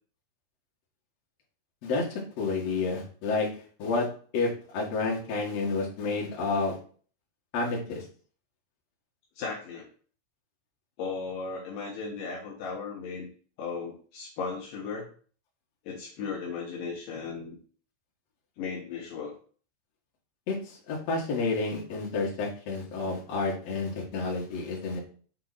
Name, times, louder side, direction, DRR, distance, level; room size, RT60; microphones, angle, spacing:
voice 1, 1.8-3.5 3.8-4.1 4.3-6.8 7.5-8.0 20.5-25.0, left 3 dB, 50° left, -3 dB, 2.1 m, -30 dB
voice 2, 9.4-9.9 11.0-13.3 13.6-15.1 15.9-17.6 18.6-19.3, left 5 dB, 80° left, -2 dB, 2.0 m, -36 dB
7.5 x 3.9 x 4.3 m, 0.43 s
omnidirectional pair, 5.6 m